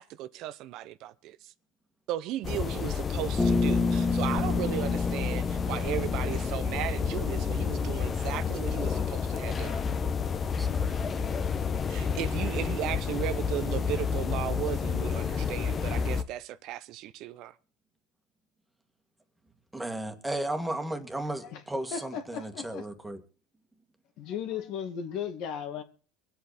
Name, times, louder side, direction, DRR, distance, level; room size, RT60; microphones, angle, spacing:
voice 1, 0.0-1.5 2.1-9.8 11.9-17.5, right 14 dB, 60° right, 0.6 m, -36 dB
sound 1, 2.4-16.2, left 6 dB, 30° left, 1.0 m, -30 dB
Bass guitar, 3.4-7.3, left 3 dB, 10° left, 2.0 m, -29 dB
voice 2, 10.6-11.4 19.7-23.2, right 1 dB, 10° right, 2.0 m, -35 dB
voice 3, 21.9-22.9 24.2-25.8, left 8 dB, 60° left, 2.2 m, -36 dB
23.5 x 8.0 x 4.2 m
supercardioid pair, 110°, 0 cm